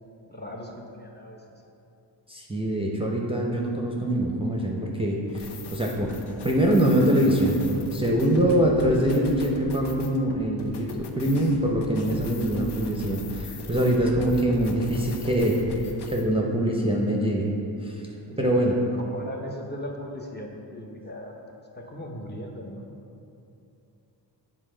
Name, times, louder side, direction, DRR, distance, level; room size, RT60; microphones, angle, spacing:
voice 1, 0.3-1.6 18.3-21.3 21.7-23.0, equal, 20° left, 0 dB, 0.8 m, -38 dB
voice 2, 2.3-5.4 5.7-6.1 6.4-7.6 7.9-15.6 16.1-17.5 17.8-18.0 18.4-18.7, right 1 dB, 10° right, -2 dB, 0.6 m, -23 dB
sound 1, 5.3-16.2, left 3 dB, 60° left, 0.7 m, -40 dB
7.2 x 3.9 x 3.8 m, 2.8 s
cardioid pair, 65°, 45 cm